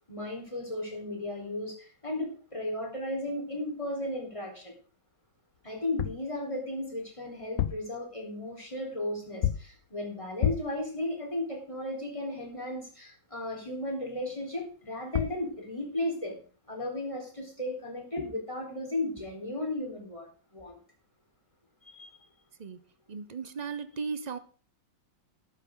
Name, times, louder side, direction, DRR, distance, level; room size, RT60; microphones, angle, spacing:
voice 1, 0.1-4.7 5.6-16.4 16.7-20.8 21.8-22.1, left 1 dB, 15° left, 0 dB, 4.2 m, -35 dB
sound 1, 5.8-6.3 7.4-8.0 9.4-9.8 10.4-10.8 14.8-14.9 15.1-15.5, left 11 dB, 60° left, 1.1 m, -30 dB
voice 2, 23.1-24.4, right 5 dB, 65° right, 12 dB, 0.4 m, -36 dB
13.5 x 12.0 x 3.9 m, 0.38 s
omnidirectional pair, 2.0 m